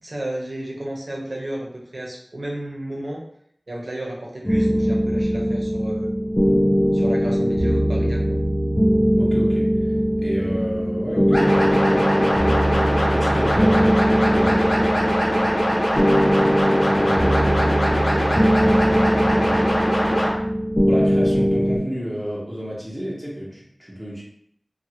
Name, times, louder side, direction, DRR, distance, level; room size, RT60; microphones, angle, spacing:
voice 1, 0.0-3.2 3.7-6.1 6.9-8.4, right 1 dB, 65° right, -2 dB, 0.8 m, -32 dB
sound 1, 4.5-21.8, equal, 20° left, 0.5 m, -20 dB
voice 2, 9.2-9.9 10.2-12.7 13.1-15.5 16.8-19.7 20.9-24.2, equal, 10° right, -6 dB, 1.0 m, -31 dB
sound 2, 11.3-20.3, equal, 90° left, 1.1 m, -22 dB
2.7 x 2.6 x 2.9 m, 0.67 s
wide cardioid pair, 45°, 0 cm